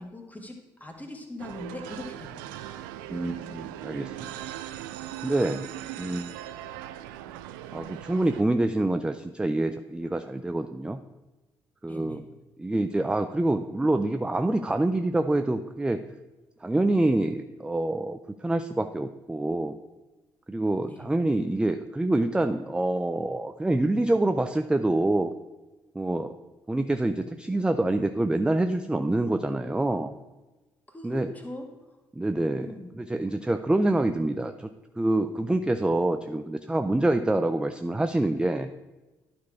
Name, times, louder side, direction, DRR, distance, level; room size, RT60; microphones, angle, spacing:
voice 1, 0.0-2.7 11.8-12.2 20.8-21.1 30.9-31.7 32.6-32.9, left 2 dB, 15° left, 3 dB, 1.8 m, -41 dB
sound 1, 1.4-8.4, right 12 dB, 75° right, 0.4 m, -39 dB
voice 2, 3.1-4.3 5.2-5.6 6.0-6.4 7.7-11.0 11.8-12.2 12.6-16.0 16.6-19.7 20.5-25.3 26.0-26.3 26.7-30.2 31.0-31.3 32.1-34.7 35.0-38.7, right 2 dB, 10° right, 9 dB, 0.5 m, -26 dB
11.5 x 4.3 x 4.6 m, 1.1 s
figure-of-eight pair, 45°, 11 cm